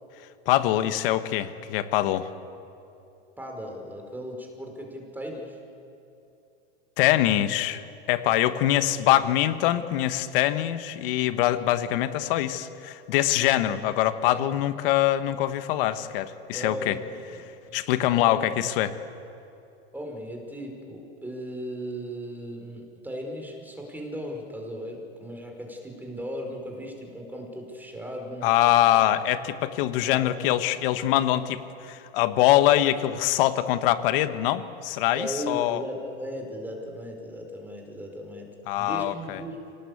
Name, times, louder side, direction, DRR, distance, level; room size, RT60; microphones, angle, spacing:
voice 1, 0.4-2.3 7.0-7.8 8.1-17.0 17.7-19.0 28.4-35.8 38.7-39.4, left 13 dB, 60° left, 11 dB, 1.5 m, -23 dB
voice 2, 3.4-5.6 14.3-14.4 16.5-17.4 17.7-17.8 18.1-18.4 19.9-28.5 28.9-29.0 30.1-30.3 35.1-38.5 38.8-39.6, equal, 5° right, 2 dB, 5.0 m, -37 dB
26.0 x 18.5 x 8.2 m, 2.7 s
hypercardioid pair, 120°, 32 cm